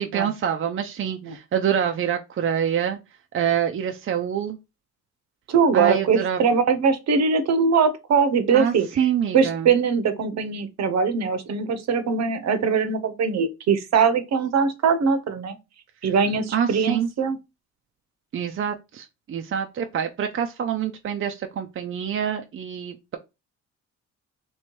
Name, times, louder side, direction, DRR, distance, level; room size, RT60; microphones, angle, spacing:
voice 1, 0.0-3.0 3.3-4.6 5.7-6.4 8.5-9.7 16.5-17.1 18.3-23.2, right 8 dB, 40° right, 0.5 m, -26 dB
voice 2, 5.5-8.9 9.3-15.6 16.0-17.4, right 5 dB, 60° right, 0.9 m, -21 dB
3.1 x 3.0 x 4.5 m
cardioid pair, 90°, 30 cm